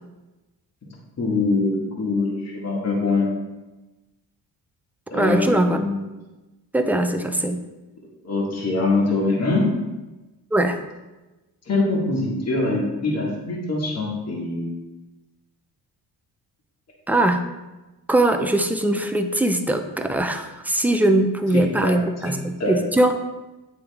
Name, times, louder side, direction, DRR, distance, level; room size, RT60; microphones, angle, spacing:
voice 1, 0.8-3.3 5.1-6.0 8.2-9.7 11.6-14.7 21.5-22.0 22.2-22.8, left 2 dB, 35° left, -3 dB, 1.6 m, -23 dB
voice 2, 5.1-5.8 6.7-7.6 10.5-10.8 17.1-17.5 18.1-23.1, right 1 dB, 5° right, 6 dB, 0.4 m, -21 dB
9.4 x 3.5 x 3.5 m, 1.1 s
cardioid pair, 110°, 43 cm